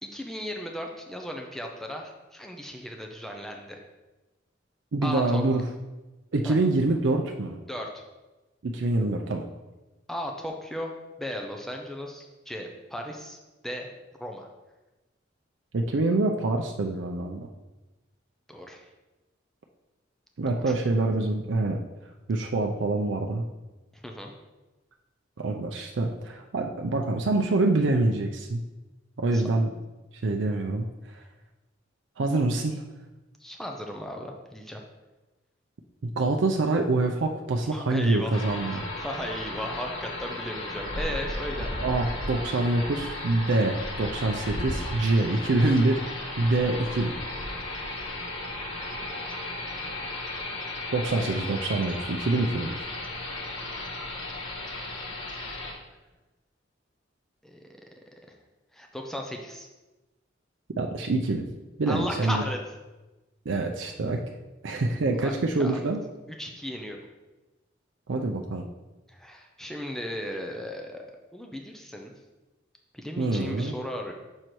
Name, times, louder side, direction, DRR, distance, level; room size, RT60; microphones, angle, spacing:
voice 1, 0.0-3.8 5.0-5.4 6.4-6.6 7.7-8.0 10.1-10.9 11.2-13.4 13.6-13.9 14.2-14.5 18.5-18.9 20.5-20.7 23.9-24.3 29.3-29.4 33.4-34.8 37.7-38.4 38.7-41.7 55.5-55.6 57.4-57.7 58.3-58.4 58.7-59.7 61.9-62.6 63.8-63.9 65.2-65.3 65.6-65.8 66.4-67.0 69.1-71.1 71.3-72.1 72.9-74.1, equal, ahead, 2 dB, 0.6 m, -36 dB
voice 2, 4.9-5.6 6.3-7.6 8.6-9.4 15.7-17.5 20.4-21.8 22.3-23.5 25.4-28.6 29.2-29.7 30.2-30.9 31.1-31.2 32.2-32.8 36.2-38.8 41.8-46.0 46.4-47.2 50.9-52.9 60.8-61.4 61.8-62.4 63.5-64.2 64.6-66.0 68.1-68.6 73.2-73.8, right 2 dB, 65° right, 2 dB, 0.5 m, -25 dB
sound 1, 38.3-55.7, left 1 dB, 80° left, 1.3 m, -35 dB
6.4 x 4.4 x 4.6 m, 1.1 s
head